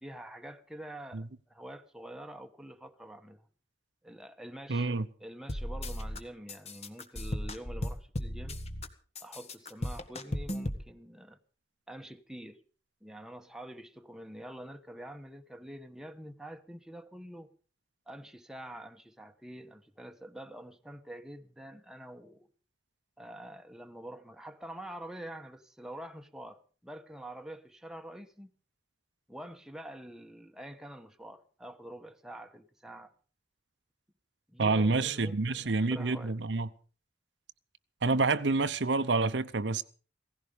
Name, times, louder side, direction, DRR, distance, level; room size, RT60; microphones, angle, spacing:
voice 1, 0.0-3.5 4.0-4.9 5.2-8.6 9.2-11.4 11.9-12.6 13.0-17.5 18.1-22.5 23.2-28.5 29.3-33.1 34.5-36.3, right 1 dB, 5° right, 1.1 m, -46 dB
voice 2, 4.7-5.1 34.6-36.7 38.0-39.8, right 3 dB, 75° right, 0.8 m, -28 dB
sound 1, 5.5-6.2 6.5-8.9 9.2-10.8, left 1 dB, 35° left, 1.5 m, -36 dB
17.0 x 15.5 x 5.1 m
head